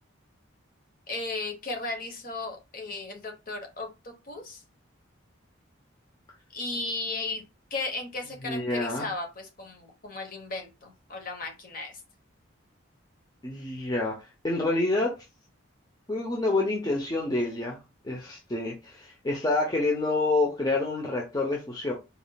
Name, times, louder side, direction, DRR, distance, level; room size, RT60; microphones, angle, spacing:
voice 1, 1.1-4.6 6.5-7.4 7.7-12.0, left 3 dB, 45° left, 1.1 m, -35 dB
voice 2, 8.4-9.1 13.4-14.2 14.4-15.1 16.1-17.8 18.0-21.9, left 2 dB, 20° left, 0.6 m, -27 dB
4.0 x 3.6 x 2.3 m
head